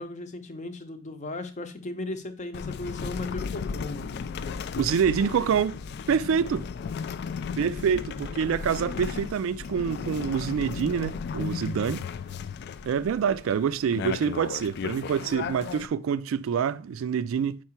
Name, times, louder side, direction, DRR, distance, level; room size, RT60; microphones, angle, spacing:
voice 1, 0.0-4.1, left 2 dB, 35° left, 0.7 m, -36 dB
sound 1, 2.5-15.9, left 6 dB, 50° left, 0.3 m, -35 dB
voice 2, 4.8-5.8 6.1-6.7 7.6-12.0 12.8-17.6, right 7 dB, 70° right, 0.3 m, -26 dB
4.8 x 4.6 x 4.3 m
head